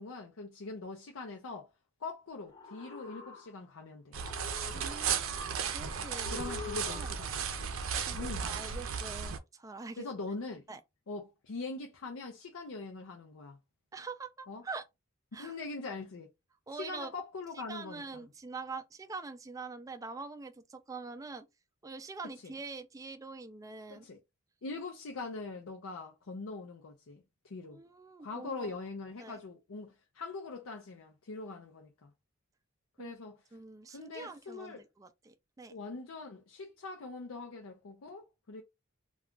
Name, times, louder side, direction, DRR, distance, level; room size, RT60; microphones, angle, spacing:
voice 1, 0.0-1.7 2.0-4.2 6.3-7.5 8.2-8.5 10.0-10.6 11.1-13.6 14.5-14.6 15.4-16.3 16.7-18.2 22.4-22.5 23.9-24.2 24.6-27.8 28.2-32.1 33.0-33.4 33.9-34.8 35.7-38.6, left 3 dB, 80° left, 0.5 m, -42 dB
sound 1, 2.4-3.8 4.2-5.4 6.1-7.4, left 5 dB, 20° left, 0.7 m, -46 dB
sound 2, 4.1-9.4, right 6 dB, 75° right, 0.5 m, -35 dB
voice 2, 4.7-5.5 5.7-6.5 6.9-7.1 8.0-10.1 10.7-10.8 13.9-14.8 15.3-15.5 16.7-17.1 17.7-21.5 21.8-24.1 27.6-28.8 29.2-29.4 33.0-33.1 33.5-35.7, right 4 dB, 15° right, 0.3 m, -44 dB
2.3 x 2.3 x 3.6 m
head